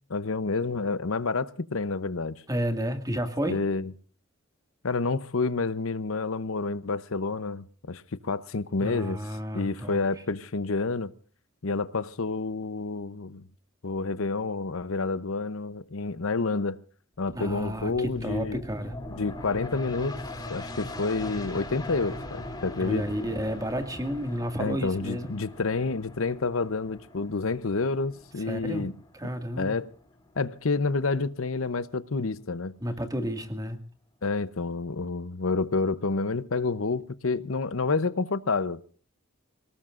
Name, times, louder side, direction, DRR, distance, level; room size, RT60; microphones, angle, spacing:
voice 1, 0.1-2.4 3.4-3.9 4.8-9.2 9.5-11.1 11.6-13.4 13.8-16.8 17.2-18.6 19.1-20.2 20.5-23.0 24.6-28.9 29.6-29.9 30.4-32.7 34.2-39.0, left 3 dB, 70° left, 0.8 m, -29 dB
voice 2, 2.5-3.6 8.8-10.0 17.3-18.9 22.8-25.3 28.5-28.9 29.1-29.8 32.8-33.8, equal, 15° right, 2.1 m, -31 dB
sound 1, 17.3-30.5 30.9-31.0, left 1 dB, 20° left, 3.1 m, -41 dB
27.5 x 18.5 x 2.5 m
head